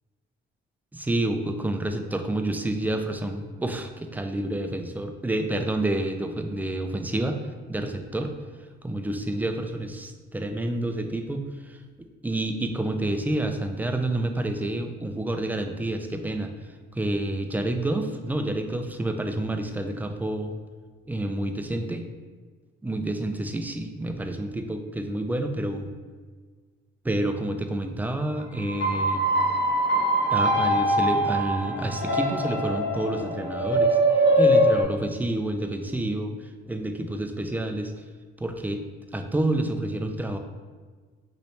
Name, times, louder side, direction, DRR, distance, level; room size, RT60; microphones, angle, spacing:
voice 1, 0.9-7.4 7.7-8.3 8.8-16.5 16.9-20.5 21.1-22.1 22.8-25.9 27.0-29.3 30.3-34.0 34.4-36.3 36.7-37.9 38.4-38.8 39.1-40.4, right 1 dB, 10° right, 6 dB, 0.4 m, -29 dB
sound 1, 28.6-34.8, right 1 dB, 65° left, 1.0 m, -23 dB
5.3 x 3.2 x 3.1 m, 1.5 s
cardioid pair, 90°, 20 cm